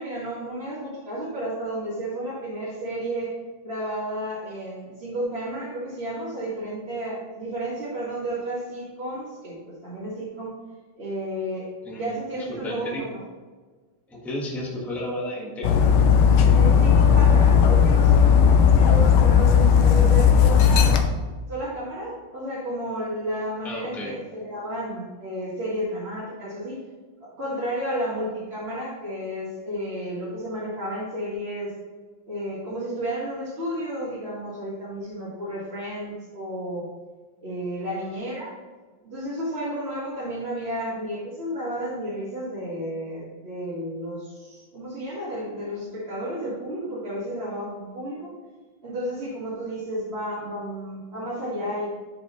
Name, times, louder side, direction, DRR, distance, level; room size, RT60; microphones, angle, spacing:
voice 1, 0.0-3.3 3.6-10.6 11.0-11.7 12.0-13.2 16.4-21.0 21.5-26.8 27.2-31.7 32.3-36.9 37.4-38.5 39.0-48.3 48.8-51.8, right 1 dB, 35° right, -9 dB, 1.9 m, -32 dB
voice 2, 12.6-13.0 14.1-15.7 23.6-24.1, left 1 dB, ahead, -3 dB, 1.1 m, -32 dB
Dog, 15.6-21.0, left 7 dB, 70° left, 1.2 m, -16 dB
10.5 x 5.1 x 3.1 m, 1.4 s
omnidirectional pair, 2.2 m